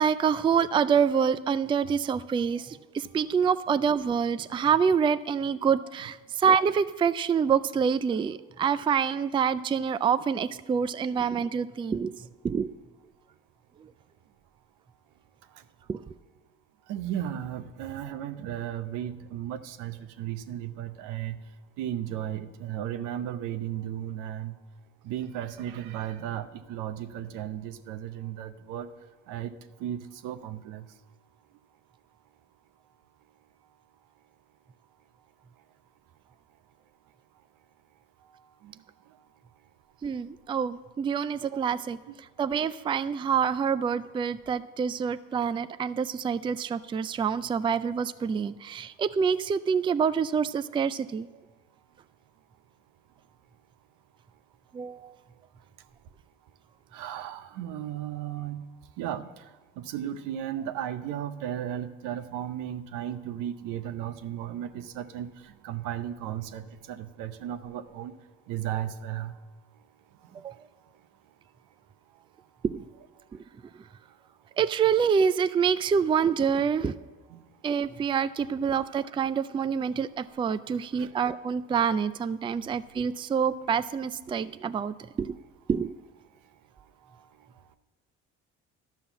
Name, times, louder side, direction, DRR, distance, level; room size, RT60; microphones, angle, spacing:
voice 1, 0.0-12.1 12.4-12.7 13.8-13.9 15.9-16.0 40.0-42.0 42.4-51.3 54.7-55.1 70.3-70.5 72.6-72.8 74.6-76.9 77.6-85.4 85.7-85.9, right 7 dB, 15° right, 14 dB, 0.3 m, -26 dB
voice 2, 16.9-21.4 21.8-24.5 25.0-28.9 29.3-29.5 29.8-30.8 38.6-38.7 56.9-58.6 59.0-59.3 59.8-65.3 65.6-68.1 68.5-69.3 77.3-77.4 81.0-81.1, right 11 dB, 85° right, 10 dB, 0.7 m, -35 dB
12.0 x 5.7 x 7.0 m, 1.3 s
cardioid pair, 85°, 31 cm